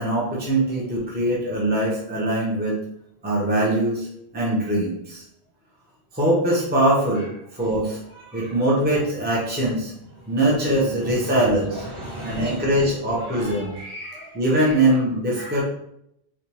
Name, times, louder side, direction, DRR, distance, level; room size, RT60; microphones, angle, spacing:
voice 1, 0.0-2.8 3.2-4.1 4.3-5.2 6.1-7.3 7.5-8.0 8.3-9.9 10.3-11.8 12.2-13.7 14.3-15.6, right 1 dB, 10° right, -6 dB, 0.8 m, -22 dB
voice 2, 8.1-8.5 10.3-15.0 15.3-15.6, equal, 55° right, -8 dB, 1.9 m, -37 dB
3.5 x 3.2 x 3.0 m, 0.76 s
omnidirectional pair, 1.1 m